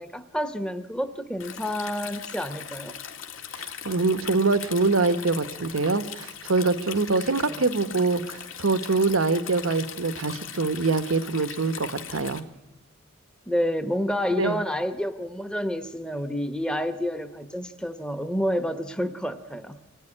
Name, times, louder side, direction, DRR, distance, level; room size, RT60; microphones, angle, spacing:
voice 1, 0.0-3.0 7.5-7.7 8.0-8.1 13.5-19.8, equal, 5° left, 9 dB, 0.9 m, -29 dB
Stream, 1.4-12.4, left 8 dB, 75° left, 2.1 m, -39 dB
voice 2, 3.5-12.4 14.4-14.6, right 3 dB, 80° right, 13 dB, 1.0 m, -24 dB
25.0 x 17.5 x 10.0 m, 1.0 s
head